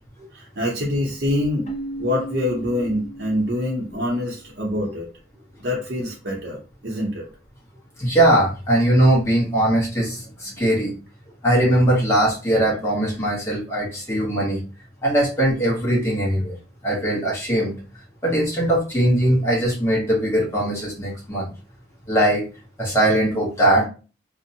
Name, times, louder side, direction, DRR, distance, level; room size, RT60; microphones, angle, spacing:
voice 1, 0.3-1.7 2.0-5.1 5.6-7.2, left 1 dB, 65° right, -3 dB, 0.7 m, -25 dB
Keyboard (musical), 1.7-4.3, right 1 dB, 35° left, 0.6 m, -36 dB
voice 2, 8.0-10.9 11.4-14.6 15.0-16.6 16.8-17.7 18.2-21.5 22.1-22.5 22.8-23.9, right 1 dB, 15° left, -4 dB, 0.9 m, -20 dB
2.5 x 2.1 x 2.7 m, 0.34 s
head